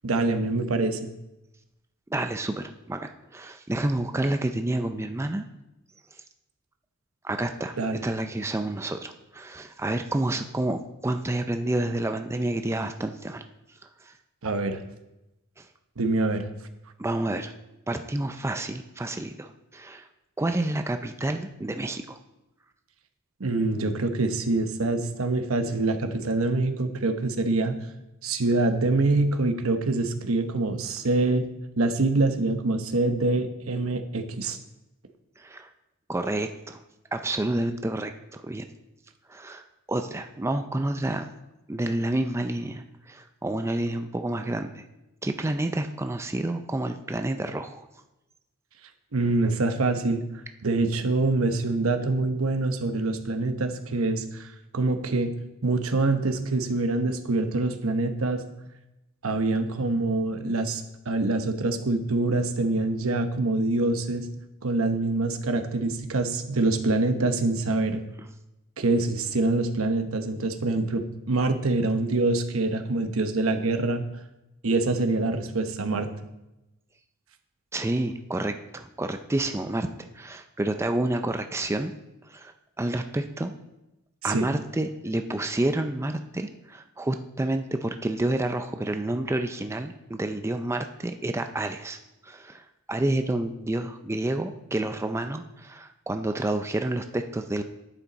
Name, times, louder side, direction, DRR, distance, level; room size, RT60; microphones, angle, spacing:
voice 1, 0.0-1.1 7.8-8.0 14.4-14.8 16.0-16.5 23.4-27.8 28.2-31.5 31.8-34.6 49.1-50.2 50.6-55.3 55.6-58.4 59.2-64.3 64.6-68.0 68.8-74.1 74.6-76.1 84.3-84.5, right 2 dB, 75° right, 8 dB, 1.0 m, -25 dB
voice 2, 2.1-5.5 7.2-7.8 8.0-13.4 13.8-14.1 15.6-15.7 17.0-17.5 17.9-20.1 20.4-22.2 35.4-35.7 36.1-36.8 37.1-38.7 39.3-41.3 41.7-44.8 45.2-47.9 77.7-81.9 82.3-83.5 84.2-97.6, right 1 dB, 15° right, 7 dB, 0.4 m, -29 dB
10.0 x 8.6 x 4.1 m, 0.94 s
head